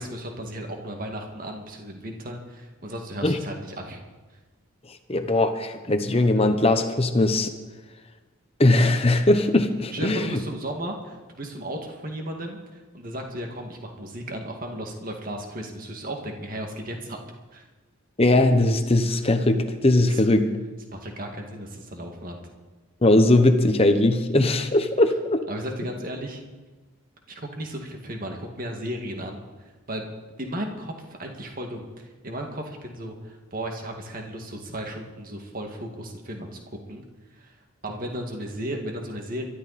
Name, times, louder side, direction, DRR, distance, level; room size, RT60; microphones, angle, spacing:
voice 1, 0.0-4.0 9.9-17.2 17.5-17.7 20.1-20.2 20.9-22.4 25.5-26.4 27.3-29.4 29.9-30.1 30.4-30.9 31.2-36.6 36.9-37.0 37.4-37.5 37.8-39.4, right 1 dB, 40° right, 2 dB, 2.1 m, -35 dB
voice 2, 4.9-7.5 8.6-10.4 18.2-20.5 23.0-25.4, left 2 dB, 25° left, 7 dB, 1.0 m, -20 dB
22.5 x 13.0 x 4.3 m, 1.2 s
head